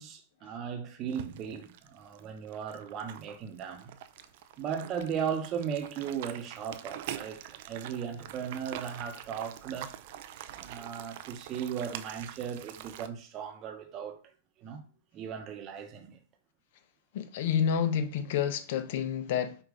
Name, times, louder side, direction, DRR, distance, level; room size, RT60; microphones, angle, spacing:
voice 1, 0.0-3.9 4.6-9.9 10.6-14.2 14.6-14.8 15.1-16.2, right 7 dB, 35° right, 0.8 m, -37 dB
sound 1, 1.1-13.1, right 11 dB, 60° right, 0.4 m, -45 dB
voice 2, 17.1-19.6, left 8 dB, 60° left, 0.6 m, -29 dB
4.8 x 2.5 x 3.7 m
hypercardioid pair, 125°, 0 cm